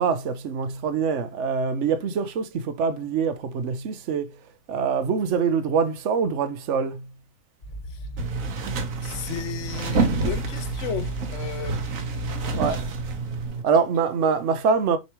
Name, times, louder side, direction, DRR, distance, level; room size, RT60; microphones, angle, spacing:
voice 1, 0.0-4.4 4.7-7.1 12.6-12.9 13.6-15.0, right 6 dB, 65° right, 1.1 m, -24 dB
sound 1, 7.6-13.5, equal, 45° left, 1.7 m, -37 dB
sound 2, 8.2-13.6, right 4 dB, 85° right, 1.5 m, -28 dB
voice 2, 9.0-12.8, left 9 dB, 70° left, 1.0 m, -35 dB
7.0 x 4.8 x 3.0 m
omnidirectional pair, 1.4 m